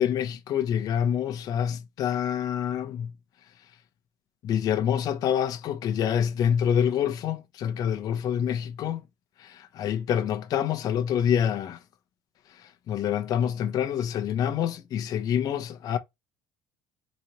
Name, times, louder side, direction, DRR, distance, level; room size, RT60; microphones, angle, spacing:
voice 1, 0.0-3.1 4.4-9.0 9.4-11.8 12.5-16.0, left 9 dB, 50° left, 0.8 m, -27 dB
4.1 x 3.1 x 2.9 m
cardioid pair, 135°, 8 cm